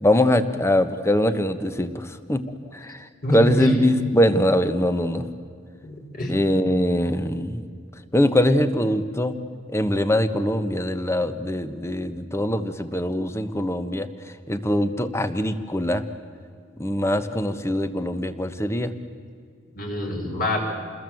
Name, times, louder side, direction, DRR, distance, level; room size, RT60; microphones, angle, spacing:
voice 1, 0.0-2.4 2.7-5.2 6.3-7.6 8.1-9.3 9.7-14.1 14.5-16.0 16.8-18.9, left 1 dB, 15° left, 10 dB, 1.3 m, -22 dB
voice 2, 3.2-3.7 5.8-6.4 19.7-20.6, left 1 dB, 50° left, 1 dB, 5.6 m, -26 dB
28.5 x 21.0 x 7.9 m, 2.2 s
head